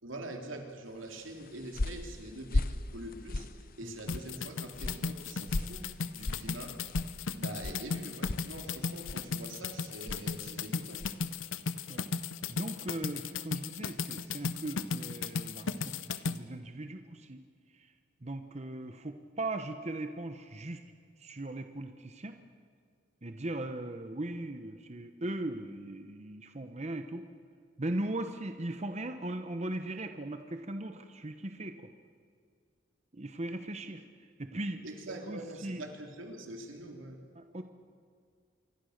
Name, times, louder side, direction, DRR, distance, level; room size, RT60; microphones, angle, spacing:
voice 1, 0.0-6.8 7.4-11.0 34.8-37.2, right 1 dB, 85° right, 3 dB, 3.4 m, -44 dB
sound 1, 1.2-11.3, left 2 dB, 45° left, 0.7 m, -38 dB
sound 2, 4.1-16.4, left 4 dB, 85° left, 0.9 m, -36 dB
voice 2, 12.5-17.4 17.7-17.9 18.2-20.8 21.2-22.3 23.2-27.2 27.8-31.9 33.1-34.0 34.4-35.8 37.4-37.6, right 1 dB, 35° right, 7 dB, 1.0 m, -39 dB
27.0 x 23.5 x 6.6 m, 2.1 s
head